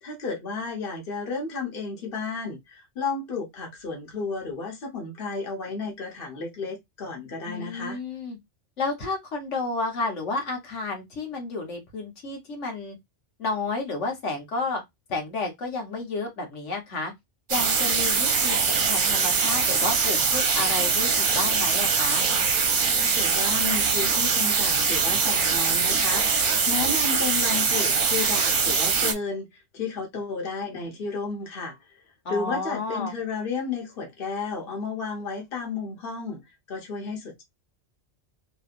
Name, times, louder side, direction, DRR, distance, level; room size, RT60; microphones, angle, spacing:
voice 1, 0.0-8.0 23.0-26.2 26.7-31.9 32.3-36.4 36.7-37.4, left 4 dB, 50° left, 1.3 m, -32 dB
voice 2, 7.5-8.4 8.8-13.0 13.4-14.8 15.1-17.1 17.5-22.2 32.2-33.1, left 3 dB, 75° left, 1.4 m, -31 dB
sound 1, 17.5-29.1, right 5 dB, 50° right, 0.8 m, -23 dB
3.1 x 3.0 x 2.4 m
omnidirectional pair, 1.2 m